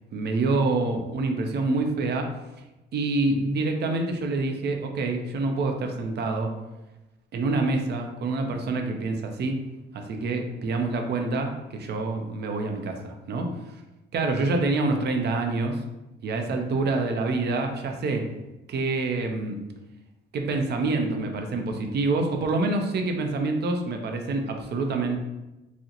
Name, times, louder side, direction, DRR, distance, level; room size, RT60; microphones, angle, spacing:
voice 1, 0.1-2.3 2.9-6.5 7.3-9.6 9.9-13.5 14.1-15.8 16.2-18.2 18.7-19.6 20.3-25.2, right 3 dB, 55° right, 4 dB, 0.5 m, -26 dB
3.6 x 2.1 x 2.8 m, 1.0 s
cardioid pair, 90°, 20 cm